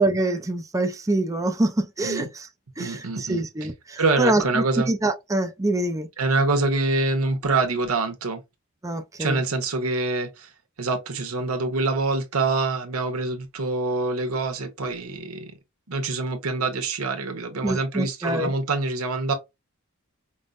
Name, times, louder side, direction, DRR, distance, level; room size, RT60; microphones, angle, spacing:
voice 1, 0.0-2.5 2.8-6.1 8.8-9.4 17.6-18.5, right 2 dB, 15° right, 0.4 m, -25 dB
voice 2, 2.8-3.4 4.0-4.9 6.2-8.4 9.2-10.5 10.8-15.5 15.9-19.3, right 3 dB, 90° right, 1.0 m, -25 dB
5.1 x 2.0 x 2.5 m
head